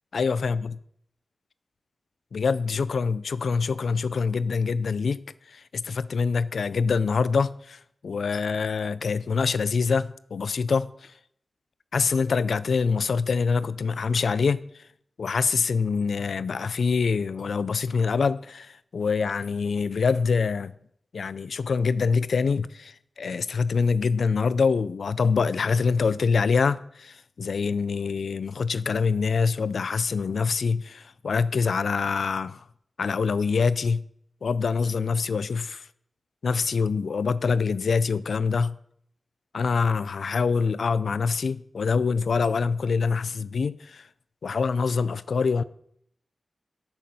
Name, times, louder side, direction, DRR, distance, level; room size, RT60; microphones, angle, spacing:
voice 1, 0.1-0.7 2.3-5.2 5.5-11.1 11.9-14.6 15.2-20.7 21.1-32.6 33.0-34.0 34.4-35.9 36.4-38.8 39.5-44.1 44.4-45.6, left 5 dB, 80° left, 0.4 m, -25 dB
13.5 x 6.8 x 5.5 m
wide cardioid pair, 90°, 0 cm